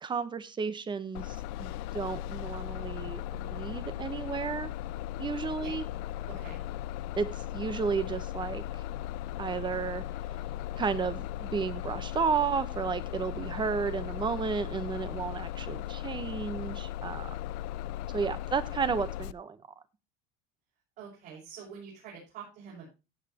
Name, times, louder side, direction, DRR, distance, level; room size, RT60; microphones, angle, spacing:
voice 1, 0.0-4.7 5.2-5.8 7.2-8.6 9.4-10.0 10.8-17.4 18.1-19.6, right 5 dB, 25° right, 13 dB, 1.0 m, -32 dB
Bus, 1.1-19.3, left 13 dB, 80° left, 0.4 m, -37 dB
voice 2, 6.3-6.6 21.0-22.9, right 6 dB, 60° right, -5 dB, 6.7 m, -46 dB
15.5 x 7.5 x 2.9 m, 0.27 s
cardioid pair, 125°, 19 cm